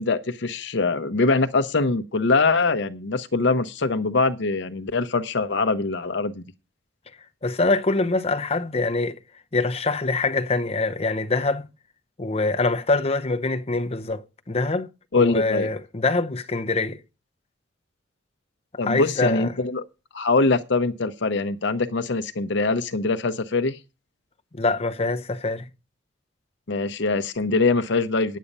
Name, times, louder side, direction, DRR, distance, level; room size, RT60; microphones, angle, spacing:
voice 1, 0.0-6.4 15.1-15.7 18.8-19.8 20.1-23.8 26.7-28.4, left 3 dB, 65° left, 0.8 m, -23 dB
voice 2, 7.4-9.2 9.5-11.7 12.2-14.9 15.2-17.0 18.8-19.5 24.5-25.7, left 3 dB, 30° left, 0.7 m, -24 dB
9.9 x 8.4 x 5.3 m
head